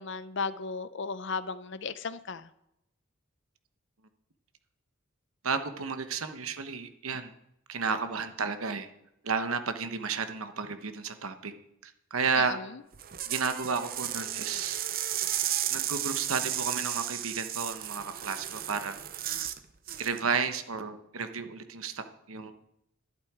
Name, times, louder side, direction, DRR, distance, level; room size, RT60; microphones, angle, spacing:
voice 1, 0.0-2.5 12.4-12.7, left 4 dB, 60° left, 0.6 m, -35 dB
voice 2, 5.4-7.3 7.7-8.9 9.2-11.5 11.8-12.6 13.3-14.8 15.7-19.0 20.0-22.5, right 5 dB, 85° right, 1.1 m, -32 dB
sound 1, 12.9-19.6 19.9-20.2, right 12 dB, 45° right, 0.6 m, -33 dB
11.5 x 11.0 x 4.9 m
head